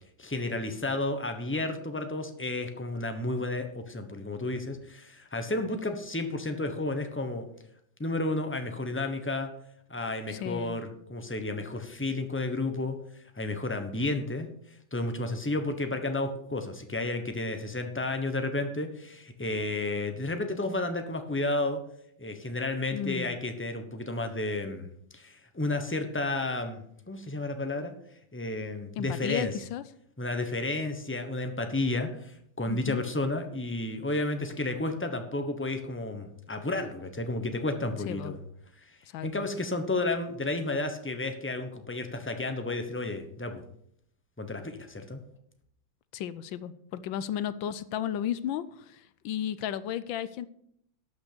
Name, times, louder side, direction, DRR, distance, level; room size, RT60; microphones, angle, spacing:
voice 1, 0.2-7.4 8.0-9.5 9.9-14.5 14.9-21.8 22.2-24.9 25.1-27.9 28.3-29.5 30.2-38.4 38.8-38.9 39.2-43.6 44.4-45.2, left 2 dB, 10° left, 6 dB, 0.7 m, -32 dB
voice 2, 10.3-10.8 22.9-23.4 29.0-29.8 32.7-33.0 38.1-38.3 39.1-39.3 46.1-50.5, left 10 dB, 80° left, 15 dB, 1.4 m, -34 dB
12.0 x 6.3 x 6.8 m, 0.69 s
omnidirectional pair, 2.2 m